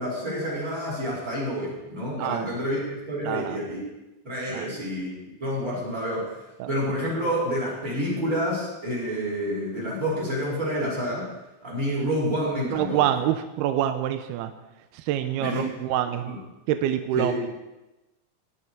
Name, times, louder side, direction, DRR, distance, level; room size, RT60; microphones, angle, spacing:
voice 1, 0.0-3.8 4.2-11.3 11.6-13.0 15.4-15.7 16.2-16.4 17.1-17.5, equal, 25° right, -6 dB, 5.6 m, -28 dB
voice 2, 3.2-3.6 4.5-4.7 6.6-6.7 12.7-14.5 14.9-16.4 16.7-17.3, right 11 dB, 80° right, 9 dB, 2.4 m, -26 dB
18.5 x 11.0 x 5.1 m, 1.0 s
omnidirectional pair, 5.1 m